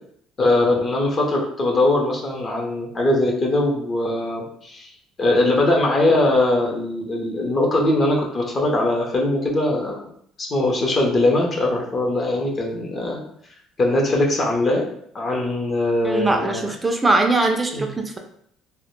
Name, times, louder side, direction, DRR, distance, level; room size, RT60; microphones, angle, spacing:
voice 1, 0.4-4.9 5.2-10.1 10.4-13.2 13.8-14.9 15.1-16.6 17.7-17.9, left 2 dB, 35° left, 0 dB, 0.6 m, -21 dB
voice 2, 16.0-18.2, right 2 dB, 15° right, 4 dB, 0.3 m, -21 dB
2.1 x 2.0 x 3.0 m, 0.67 s
cardioid pair, 105°, 0 cm